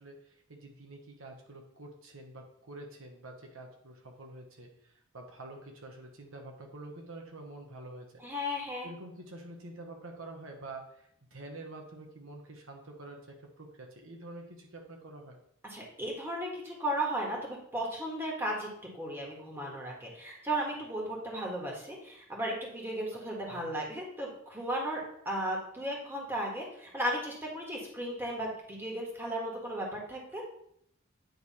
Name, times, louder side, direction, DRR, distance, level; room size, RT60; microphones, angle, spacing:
voice 1, 0.0-8.2 8.8-13.2 13.6-15.4 23.1-23.2 23.5-23.7, right 2 dB, 75° right, 2 dB, 1.1 m, -47 dB
voice 2, 8.2-8.9 15.6-18.7 18.9-30.5, right 1 dB, 10° right, -2 dB, 1.5 m, -35 dB
9.2 x 3.2 x 4.2 m, 0.71 s
head